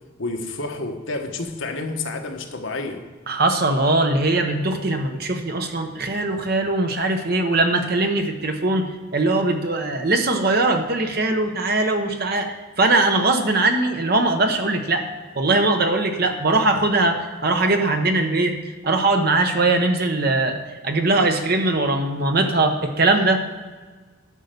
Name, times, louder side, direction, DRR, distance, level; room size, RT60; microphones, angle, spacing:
voice 1, 0.2-3.0, left 2 dB, 65° left, 3 dB, 1.2 m, -29 dB
voice 2, 3.3-15.0 15.3-18.6 18.8-23.4, right 2 dB, 45° right, 5 dB, 1.0 m, -21 dB
11.0 x 5.5 x 6.8 m, 1.4 s
head